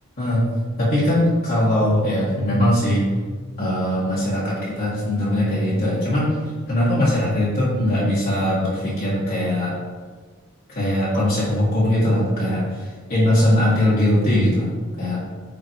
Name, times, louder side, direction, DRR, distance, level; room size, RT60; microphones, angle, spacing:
voice 1, 0.8-3.1 3.6-6.3 6.7-9.7 10.7-14.7 15.0-15.2, left 1 dB, 45° left, -9 dB, 1.6 m, -20 dB
9.1 x 3.9 x 3.2 m, 1.5 s
head